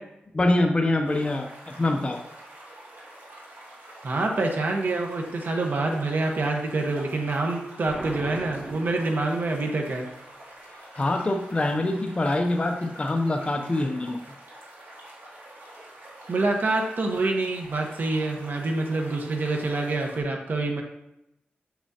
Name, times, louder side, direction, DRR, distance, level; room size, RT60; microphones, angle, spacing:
voice 1, 0.3-2.2 10.9-14.2, left 2 dB, 30° left, 3 dB, 0.6 m, -25 dB
sound 1, 1.0-20.2, right 1 dB, 70° right, 2.2 m, -46 dB
voice 2, 4.0-10.1 16.3-20.8, right 2 dB, 55° right, 2 dB, 1.1 m, -26 dB
Explosion, 7.9-9.7, right 1 dB, 15° right, 0.9 m, -38 dB
7.4 x 6.0 x 2.8 m, 0.84 s
wide cardioid pair, 85°, 4 cm